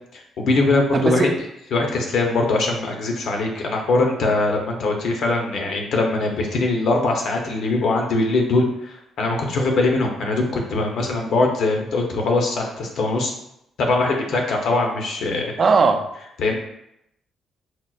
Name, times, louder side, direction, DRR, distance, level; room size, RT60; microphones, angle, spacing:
voice 1, 0.1-13.3 13.8-15.7 16.4-16.6, left 2 dB, 70° left, 1 dB, 0.7 m, -22 dB
voice 2, 0.9-1.3 15.6-16.0, right 4 dB, 40° right, 7 dB, 0.3 m, -17 dB
4.3 x 2.0 x 2.3 m, 0.79 s
cardioid pair, 90°, 0 cm